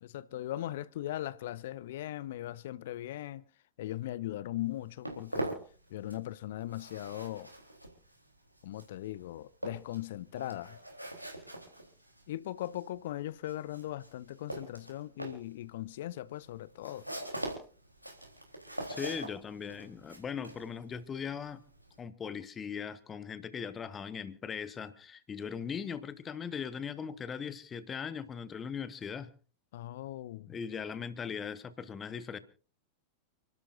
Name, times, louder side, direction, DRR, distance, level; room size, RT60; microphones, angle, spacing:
voice 1, 0.0-3.4 3.8-5.5 5.9-7.5 8.6-10.8 12.3-17.1 29.7-30.5, left 14 dB, 55° left, 0.7 m, -39 dB
Walk footsteps, 4.6-6.3 6.6-22.0, right 1 dB, 90° right, 3.7 m, -43 dB
voice 2, 18.9-21.6 22.0-29.3 30.5-32.4, left 7 dB, 20° left, 1.4 m, -39 dB
30.0 x 12.5 x 2.6 m
figure-of-eight pair, 90°, 0 cm